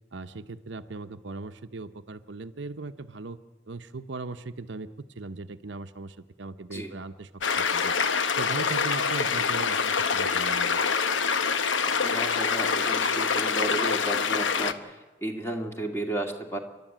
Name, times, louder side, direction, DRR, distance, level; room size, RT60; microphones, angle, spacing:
voice 1, 0.1-3.4 3.7-7.3 7.5-10.8, right 3 dB, 65° right, 9 dB, 0.8 m, -39 dB
sound 1, 7.4-14.7, left 5 dB, 75° left, 1.0 m, -25 dB
voice 2, 12.0-16.6, right 1 dB, 15° left, 3 dB, 2.2 m, -33 dB
29.0 x 12.0 x 9.1 m, 1.2 s
head